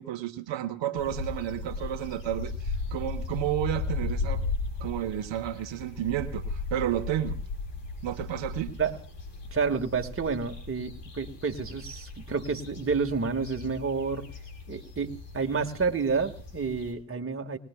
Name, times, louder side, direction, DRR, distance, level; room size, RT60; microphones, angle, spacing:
voice 1, 0.0-4.4 4.8-7.4 8.0-8.8, right 12 dB, 75° right, 7 dB, 1.2 m, -31 dB
sound 1, 0.9-16.9, left 3 dB, 75° left, 6.5 m, -36 dB
voice 2, 9.5-14.3 14.7-17.6, right 5 dB, 30° right, 4 dB, 1.7 m, -29 dB
30.0 x 19.5 x 2.3 m, 0.43 s
cardioid pair, 75°, 44 cm